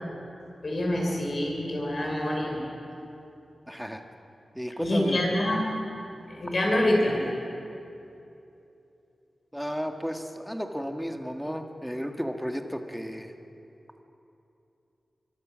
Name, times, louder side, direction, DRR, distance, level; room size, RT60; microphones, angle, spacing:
voice 1, 0.6-2.6 4.8-5.6 6.3-7.2, left 1 dB, 40° left, -1 dB, 5.7 m, -26 dB
voice 2, 3.7-4.0 4.5-5.2 9.5-13.3, equal, ahead, 4 dB, 1.5 m, -33 dB
25.5 x 22.5 x 6.3 m, 2.8 s
wide cardioid pair, 130°, 0 cm